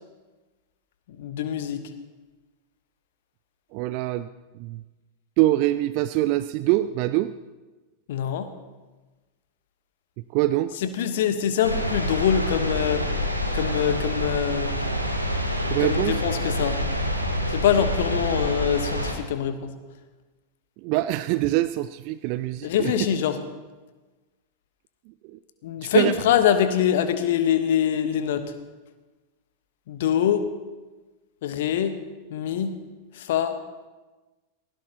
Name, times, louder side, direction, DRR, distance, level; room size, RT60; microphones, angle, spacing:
voice 1, 1.2-1.8 8.1-8.5 10.8-13.1 13.5-14.7 15.8-16.8 17.5-19.7 22.6-23.4 25.6-28.4 29.9-30.4 31.4-32.0 32.3-32.7 33.2-33.5, left 9 dB, 55° left, 10 dB, 1.1 m, -24 dB
voice 2, 3.7-4.3 4.6-4.8 5.4-7.3 10.3-10.7 15.7-16.2 20.8-22.9 25.8-26.1, right 16 dB, 45° right, 14 dB, 0.4 m, -24 dB
sound 1, 11.6-19.1, equal, 90° right, 1.5 m, -27 dB
18.5 x 16.5 x 2.9 m, 1.2 s
figure-of-eight pair, 90°, 0 cm